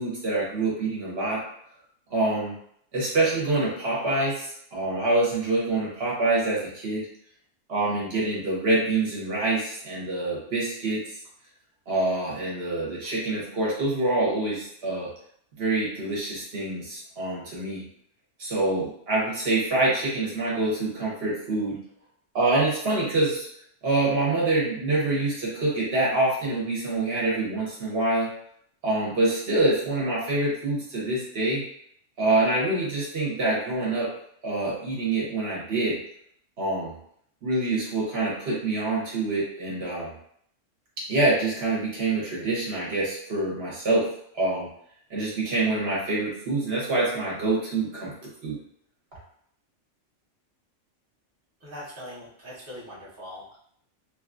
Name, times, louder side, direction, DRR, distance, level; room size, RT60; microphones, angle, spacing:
voice 1, 0.0-1.4 2.1-2.5 2.9-7.1 7.7-11.0 11.9-15.1 15.6-17.8 18.4-21.8 22.3-23.5 23.8-28.3 28.8-31.6 32.2-34.1 34.4-36.0 36.6-36.9 37.4-40.1 41.1-44.1 44.3-44.7 45.1-48.1 48.4-48.6, right 2 dB, 60° right, -5 dB, 1.0 m, -26 dB
voice 2, 51.6-53.6, left 1 dB, 15° right, -8 dB, 0.6 m, -41 dB
3.0 x 2.3 x 2.4 m, 0.68 s
omnidirectional pair, 1.3 m